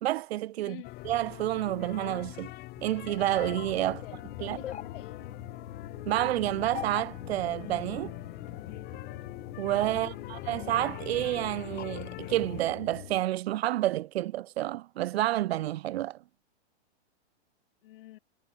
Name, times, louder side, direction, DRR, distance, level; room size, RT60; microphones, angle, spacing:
voice 1, 0.0-0.8 1.0-2.5 2.8-4.0 4.4-4.6 6.1-8.1 9.6-16.2, right 14 dB, 65° right, 0.5 m, -29 dB
voice 2, 0.6-1.1 3.8-5.2 9.9-10.3 17.8-18.2, left 16 dB, 50° left, 1.2 m, -48 dB
sound 1, 0.8-12.6, left 19 dB, 30° left, 1.5 m, -43 dB
sound 2, 2.8-3.9 4.2-4.8 5.4-5.5 5.8-5.9 6.2-6.3 6.6-9.3, right 27 dB, 35° right, 2.9 m, -64 dB
sound 3, 3.2-13.2, left 10 dB, 80° left, 1.2 m, -43 dB
hypercardioid pair, 130°, 34 cm